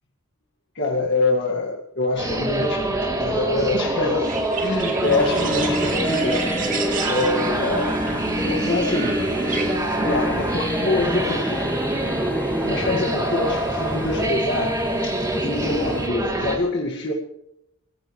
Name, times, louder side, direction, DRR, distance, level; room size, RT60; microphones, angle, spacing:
voice 1, 0.8-7.9 8.4-9.2 10.0-11.7 12.6-17.1, left 2 dB, 50° left, -1 dB, 1.9 m, -25 dB
sound 1, 2.2-16.6, right 1 dB, 15° right, 3.0 m, -25 dB
sound 2, 4.2-10.0, right 5 dB, 40° right, 2.7 m, -33 dB
sound 3, 5.0-16.1, left 1 dB, 10° left, 1.0 m, -31 dB
26.5 x 16.0 x 3.2 m, 0.81 s
head